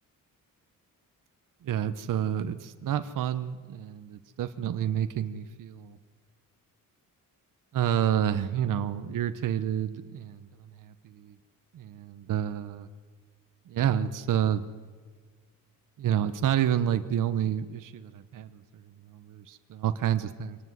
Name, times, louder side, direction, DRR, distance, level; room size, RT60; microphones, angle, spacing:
voice 1, 1.6-6.0 7.7-10.5 10.8-11.3 11.7-12.9 13.7-14.6 16.0-18.6 19.1-20.6, right 10 dB, 65° right, 9 dB, 1.0 m, -29 dB
25.0 x 18.5 x 8.0 m, 1.5 s
cardioid pair, 150°, 35 cm